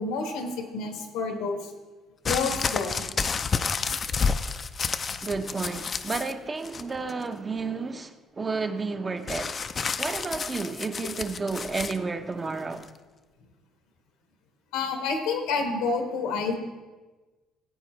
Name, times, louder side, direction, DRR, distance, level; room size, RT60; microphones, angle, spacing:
voice 1, 0.0-1.6 2.3-2.9 14.7-16.5, left 4 dB, 90° left, 1.4 m, -29 dB
sound 1, 2.2-6.3 6.6-7.2 9.3-12.0 12.8-12.9, left 5 dB, 40° left, 0.4 m, -30 dB
voice 2, 5.2-9.6 10.0-12.9, right 4 dB, 30° right, 0.7 m, -31 dB
15.0 x 8.4 x 3.2 m
supercardioid pair, 85°, 0 cm